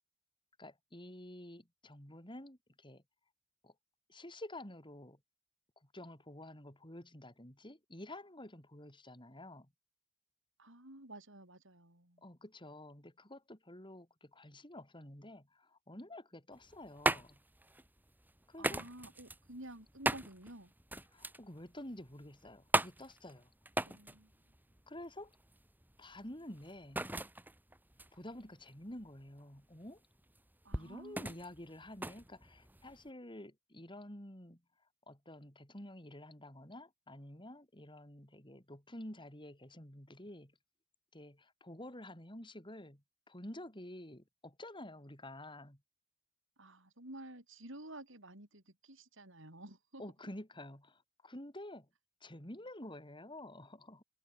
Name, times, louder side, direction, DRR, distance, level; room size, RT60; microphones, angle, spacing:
voice 1, 0.6-3.0 3.6-3.7 4.1-5.2 5.9-9.7 12.2-17.4 18.5-18.8 21.1-23.5 24.9-25.3 26.0-27.0 28.1-30.0 30.7-34.6 35.1-40.5 41.1-45.8 50.0-51.9 52.2-54.0, left 1 dB, 25° left, 6.6 m, -50 dB
voice 2, 10.6-12.2 18.6-20.7 23.9-24.3 30.6-31.4 46.6-50.0, right 1 dB, 65° right, 7.0 m, -51 dB
sound 1, 16.5-33.1, right 1 dB, 10° right, 3.3 m, -39 dB
head